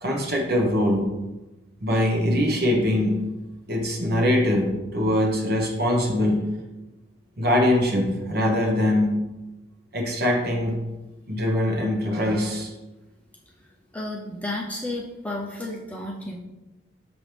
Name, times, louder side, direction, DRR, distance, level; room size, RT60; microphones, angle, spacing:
voice 1, 0.0-1.1 1.8-3.2 3.7-6.5 7.4-9.3 9.9-10.8 11.3-12.7, left 1 dB, 50° right, 1 dB, 1.2 m, -22 dB
voice 2, 13.9-16.3, left 1 dB, 5° left, -3 dB, 0.7 m, -32 dB
6.1 x 6.0 x 3.4 m, 1.1 s
head